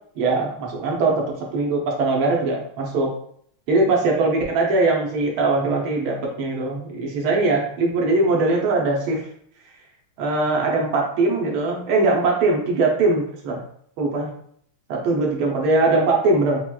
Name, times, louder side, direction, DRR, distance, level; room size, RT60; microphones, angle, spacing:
voice 1, 0.2-3.1 3.7-9.2 10.2-13.6 14.0-14.3 14.9-16.6, right 3 dB, 80° right, 0 dB, 1.6 m, -21 dB
5.8 x 2.2 x 2.2 m, 0.65 s
omnidirectional pair, 2.3 m